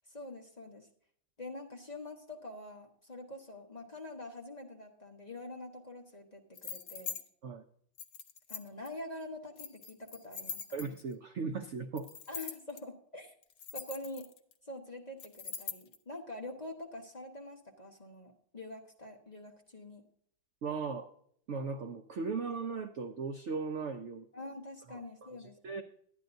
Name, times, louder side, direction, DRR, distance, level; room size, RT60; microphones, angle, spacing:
voice 1, 0.1-0.9 1.4-7.2 8.5-10.6 12.3-13.3 13.7-14.3 14.6-20.0 24.3-25.8, left 1 dB, 25° left, 1 dB, 1.0 m, -45 dB
sound 1, 6.5-7.2 8.0-8.9 9.6-11.1 12.0-12.8 13.4-14.5 15.2-16.0, left 7 dB, 55° left, 1.0 m, -42 dB
voice 2, 10.7-12.1 20.6-21.1 21.5-24.3 24.9-25.0 25.6-25.8, right 4 dB, 80° right, 6 dB, 0.6 m, -37 dB
11.5 x 10.5 x 2.6 m, 0.64 s
omnidirectional pair, 2.1 m